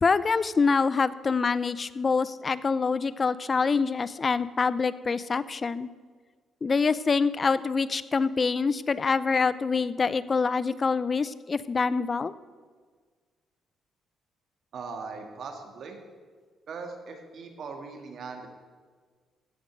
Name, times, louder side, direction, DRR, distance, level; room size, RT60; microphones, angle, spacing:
voice 1, 0.0-5.9 6.6-12.3, left 4 dB, 35° left, 16 dB, 0.5 m, -25 dB
voice 2, 14.7-16.0 16.7-18.5, right 4 dB, 60° right, 4 dB, 1.8 m, -39 dB
15.0 x 5.2 x 7.4 m, 1.6 s
cardioid pair, 90°, 0 cm